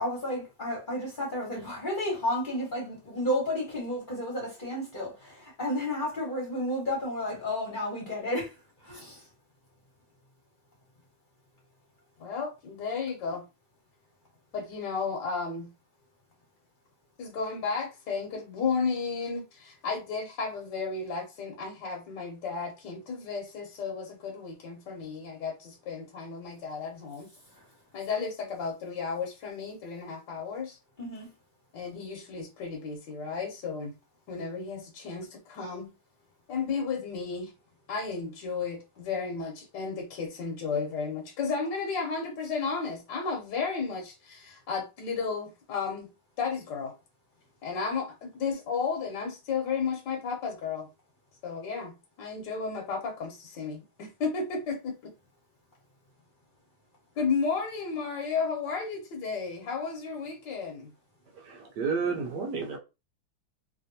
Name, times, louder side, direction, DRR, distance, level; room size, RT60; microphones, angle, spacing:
voice 1, 0.0-8.5 8.8-9.2 31.0-31.3, left 1 dB, 30° left, 1.0 m, -32 dB
voice 2, 12.2-13.4 14.5-15.7 17.2-27.3 27.9-30.8 31.7-33.9 34.3-35.9 36.5-37.5 37.9-46.1 46.4-46.9 47.6-50.9 51.4-55.1 57.2-60.9, left 5 dB, 65° left, 1.3 m, -33 dB
voice 3, 61.3-62.8, right 5 dB, 65° right, 1.1 m, -31 dB
3.3 x 2.6 x 2.7 m
omnidirectional pair, 2.4 m